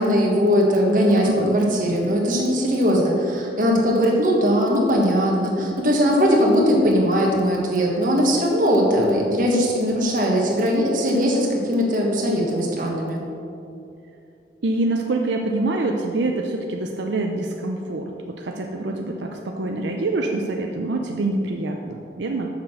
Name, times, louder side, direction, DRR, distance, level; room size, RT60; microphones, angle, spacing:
voice 1, 0.0-13.2, equal, 50° right, -1 dB, 1.5 m, -20 dB
voice 2, 1.2-1.6 14.6-18.1 18.4-22.5, right 2 dB, 85° right, 2 dB, 0.6 m, -25 dB
6.9 x 6.0 x 6.3 m, 2.7 s
head